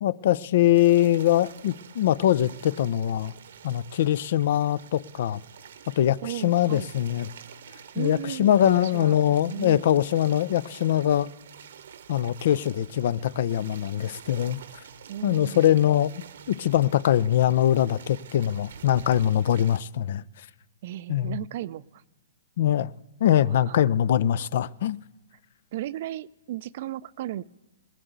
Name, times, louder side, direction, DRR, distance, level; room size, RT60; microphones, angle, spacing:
voice 1, 0.0-3.3 3.6-5.4 6.0-7.3 8.0-11.3 12.1-14.6 15.2-20.2 21.1-21.4 22.6-22.9 23.2-25.0, left 11 dB, 60° left, 0.4 m, -23 dB
sound 1, 0.7-19.8, right 8 dB, 70° right, 0.9 m, -47 dB
voice 2, 6.2-6.9 7.9-9.2 9.5-9.8 15.1-16.0 20.8-22.0 23.4-23.8 25.7-27.4, right 13 dB, 50° right, 0.4 m, -35 dB
19.5 x 7.5 x 8.1 m
hypercardioid pair, 135°, 0 cm